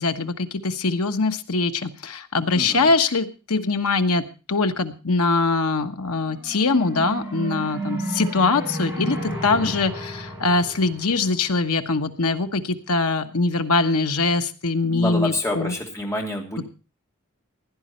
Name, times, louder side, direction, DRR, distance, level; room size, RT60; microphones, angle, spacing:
voice 1, 0.0-15.8, left 3 dB, 75° left, 7 dB, 1.3 m, -22 dB
voice 2, 2.5-2.9 9.5-9.7 14.8-16.7, left 1 dB, 15° left, 0 dB, 3.1 m, -28 dB
sound 1, 6.3-11.8, right 1 dB, 10° right, 6.9 m, -32 dB
16.5 x 10.5 x 4.4 m, 0.33 s
head